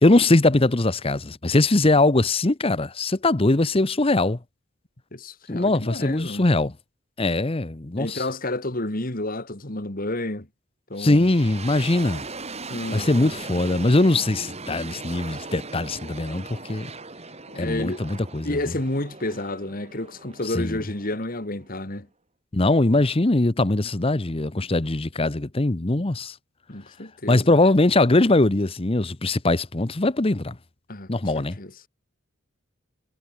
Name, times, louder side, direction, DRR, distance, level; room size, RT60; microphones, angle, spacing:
voice 1, 0.0-4.4 5.5-6.7 7.2-8.2 11.0-12.3 12.9-16.9 17.6-18.7 20.5-20.8 22.5-26.3 27.3-30.6 31.1-31.6, left 2 dB, 25° left, 0.9 m, -21 dB
voice 2, 5.1-6.5 8.0-10.5 10.9-11.3 12.7-13.3 17.5-18.0 18.4-22.1 26.7-27.5 30.9-31.7, left 1 dB, 45° left, 2.6 m, -30 dB
sound 1, 10.9-21.9, right 3 dB, 30° right, 5.0 m, -39 dB
head